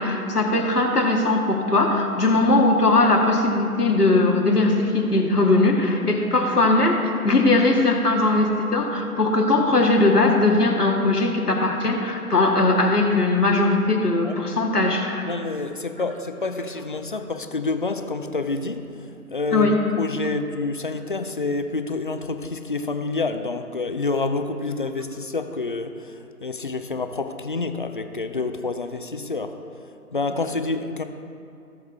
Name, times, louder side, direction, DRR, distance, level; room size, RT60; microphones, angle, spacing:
voice 1, 0.0-15.3 19.5-19.8, left 2 dB, 90° left, 0 dB, 2.0 m, -20 dB
voice 2, 15.2-18.9 19.3-29.6 30.1-31.0, left 3 dB, 35° left, 8 dB, 0.5 m, -28 dB
18.0 x 6.2 x 3.6 m, 2.5 s
figure-of-eight pair, 150°, 45 cm